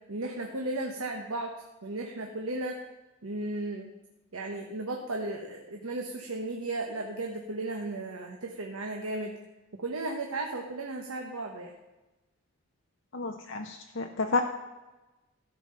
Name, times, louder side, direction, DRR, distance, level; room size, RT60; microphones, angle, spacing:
voice 1, 0.1-1.5 1.8-2.8 3.2-3.9 4.3-9.4 9.7-11.7, right 2 dB, 90° right, 2 dB, 1.1 m, -35 dB
voice 2, 13.1-14.4, left 4 dB, 60° left, 4 dB, 0.7 m, -30 dB
14.0 x 5.7 x 5.5 m, 1.1 s
head